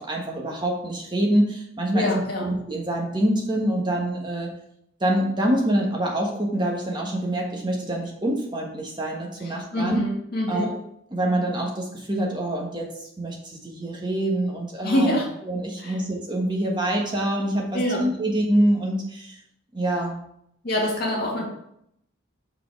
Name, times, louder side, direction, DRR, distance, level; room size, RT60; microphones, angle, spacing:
voice 1, 0.0-2.1 2.4-4.5 5.0-10.0 10.5-10.8 11.1-15.1 15.5-19.4 19.7-20.2, right 1 dB, 20° right, -1 dB, 1.3 m, -25 dB
voice 2, 1.9-2.4 9.4-10.7 14.8-15.3 15.8-15.9 17.7-18.0 20.6-21.4, equal, 50° left, -3 dB, 2.1 m, -25 dB
5.8 x 4.7 x 4.6 m, 0.74 s
head